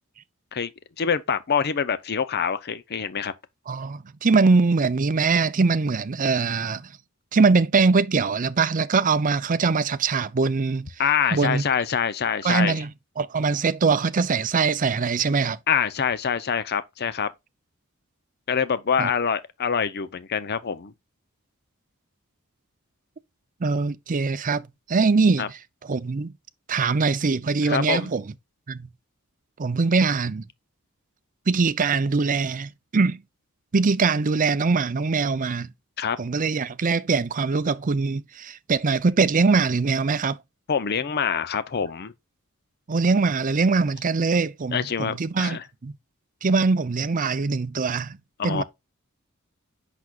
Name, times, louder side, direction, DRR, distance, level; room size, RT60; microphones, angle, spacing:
voice 1, 1.0-3.3 11.0-12.8 15.7-17.3 18.5-20.9 25.4-25.5 27.6-28.1 36.0-36.2 40.7-42.1 44.7-45.7 48.4-48.6, left 7 dB, 50° left, 0.6 m, -25 dB
voice 2, 3.7-6.9 7.3-10.9 11.3-11.6 12.4-12.9 13.2-15.6 19.0-19.1 23.6-25.5 25.9-26.3 26.7-28.2 28.7-28.9 29.6-30.4 31.5-33.2 33.7-35.7 36.2-40.4 42.9-45.9 46.4-48.2 48.4-48.6, right 4 dB, 40° right, 0.5 m, -22 dB
8.2 x 6.1 x 2.4 m
head